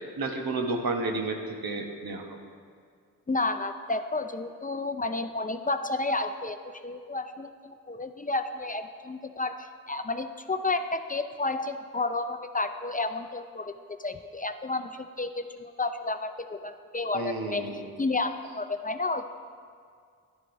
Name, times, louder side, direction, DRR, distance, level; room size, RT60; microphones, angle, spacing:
voice 1, 0.0-2.4 17.1-17.9, right 2 dB, 80° right, 3 dB, 1.0 m, -31 dB
voice 2, 3.3-17.7 18.0-19.2, left 3 dB, 25° left, 8 dB, 0.4 m, -31 dB
11.0 x 9.8 x 2.6 m, 2.1 s
cardioid pair, 45°, 36 cm